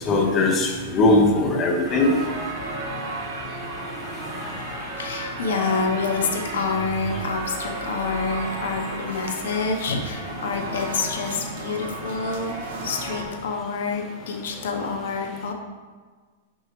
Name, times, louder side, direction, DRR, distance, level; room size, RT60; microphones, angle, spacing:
voice 1, 0.1-2.2, left 2 dB, 15° left, 1 dB, 0.7 m, -19 dB
sound 1, 1.8-13.2, right 2 dB, 55° right, 2.0 m, -33 dB
voice 2, 4.4-15.5, left 4 dB, 70° left, 3 dB, 0.8 m, -28 dB
6.3 x 6.1 x 3.0 m, 1.5 s
supercardioid pair, 180°, 0 cm